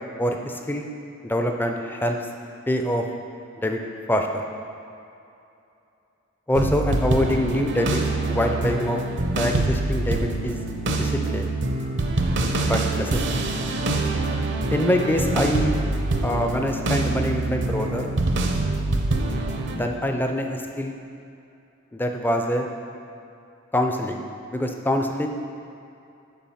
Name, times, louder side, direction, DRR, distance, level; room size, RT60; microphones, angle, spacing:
voice 1, 0.2-0.9 1.2-2.2 2.7-3.1 3.6-3.8 4.1-4.4 6.5-8.0 8.3-9.0 9.3-10.6 10.9-11.5 12.6-13.4 14.7-15.8 16.2-18.1 19.8-20.9 21.9-22.7 23.7-24.2 24.5-25.3, left 1 dB, 10° left, 3 dB, 0.5 m, -24 dB
sound 1, 6.6-19.8, right 2 dB, 60° right, 0.7 m, -25 dB
7.3 x 4.7 x 5.6 m, 2.7 s
head